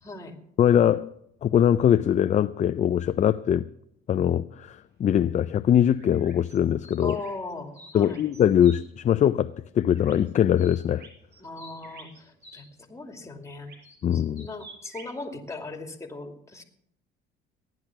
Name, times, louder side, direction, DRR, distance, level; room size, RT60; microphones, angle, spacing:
voice 1, 0.0-0.4 7.0-8.2 11.4-13.8 14.1-16.6, left 3 dB, 15° left, 2.6 m, -38 dB
voice 2, 0.6-1.1 1.4-3.7 4.1-7.2 7.9-11.1 14.0-14.5, left 9 dB, 35° left, 0.4 m, -22 dB
sound 1, 5.9-8.8 9.9-10.3 10.6-12.6 13.6-15.1, right 2 dB, 55° right, 5.2 m, -49 dB
16.0 x 10.5 x 6.0 m
supercardioid pair, 90°, 21 cm